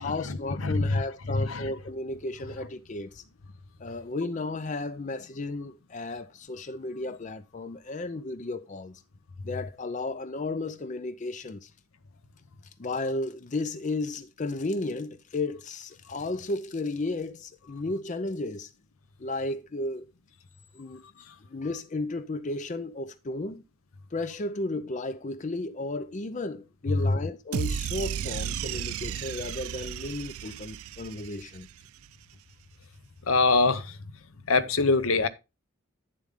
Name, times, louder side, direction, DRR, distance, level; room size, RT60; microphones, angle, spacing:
voice 1, 0.0-3.2 3.8-9.0 9.4-11.7 12.8-18.7 19.2-20.0 20.7-21.0 21.5-23.6 24.1-31.7, left 2 dB, 35° left, 0.5 m, -34 dB
voice 2, 0.6-1.0 1.4-1.7 33.3-33.9 34.5-35.3, left 3 dB, 75° left, 0.8 m, -23 dB
sound 1, 27.5-31.9, right 8 dB, 90° right, 0.4 m, -34 dB
9.4 x 7.2 x 3.6 m
head